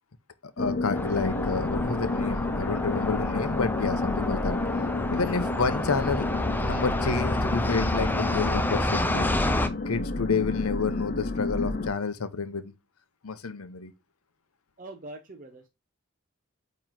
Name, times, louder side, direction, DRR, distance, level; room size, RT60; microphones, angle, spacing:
voice 1, 0.4-4.6 5.1-6.3 6.6-9.3 9.9-12.7 13.2-13.9, left 4 dB, 90° left, 0.8 m, -29 dB
sound 1, 0.6-11.9, left 3 dB, 45° left, 0.9 m, -31 dB
sound 2, 0.9-9.7, left 1 dB, 10° left, 0.4 m, -29 dB
voice 2, 14.8-15.7, right 2 dB, 40° right, 0.7 m, -43 dB
8.9 x 3.1 x 3.8 m
head